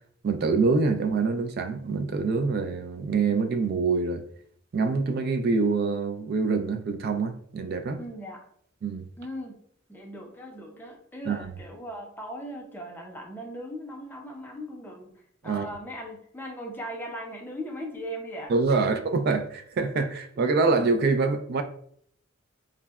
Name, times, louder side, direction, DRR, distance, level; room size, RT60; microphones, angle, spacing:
voice 1, 0.2-4.2 4.7-8.0 8.8-9.0 11.3-11.5 15.4-15.7 18.5-21.6, right 4 dB, 50° right, 0.3 m, -25 dB
voice 2, 8.0-8.4 9.2-9.6 9.9-15.1 15.4-18.5, equal, 10° left, 0.5 m, -38 dB
3.7 x 2.0 x 2.3 m
head